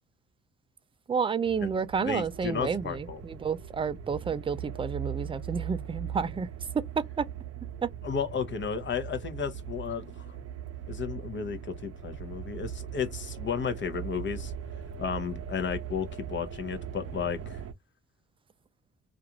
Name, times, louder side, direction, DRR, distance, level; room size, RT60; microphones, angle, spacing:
voice 1, 1.1-6.5 6.7-7.3 7.8-7.9, right 6 dB, 20° right, 0.3 m, -30 dB
sound 1, 1.4-17.7, right 8 dB, 50° right, 0.7 m, -40 dB
voice 2, 1.6-3.2 8.0-10.0 10.9-14.5 15.0-17.6, left 6 dB, 40° left, 0.7 m, -33 dB
2.5 x 2.4 x 2.8 m
cardioid pair, 90°, 30 cm